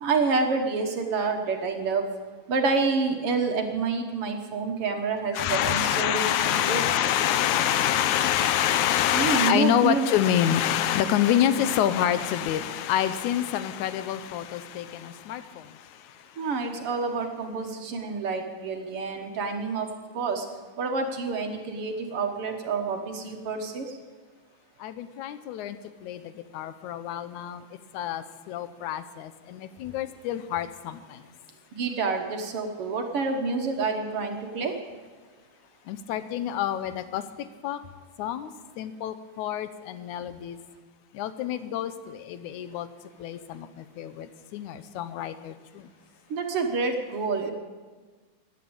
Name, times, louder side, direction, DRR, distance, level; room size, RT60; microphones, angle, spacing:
voice 1, 0.0-2.0 2.5-6.8 9.1-10.0 16.4-19.9 20.2-20.5 20.8-23.8 31.7-34.8 46.3-47.5, right 4 dB, 55° right, 4 dB, 2.0 m, -28 dB
voice 2, 5.3-16.4 24.8-27.6 27.9-31.2 35.9-37.2 37.6-37.8 38.2-38.5 38.8-40.6 41.1-42.9 43.2-45.9, left 10 dB, 85° left, 12 dB, 2.3 m, -27 dB
15.0 x 10.5 x 8.7 m, 1.4 s
omnidirectional pair, 3.3 m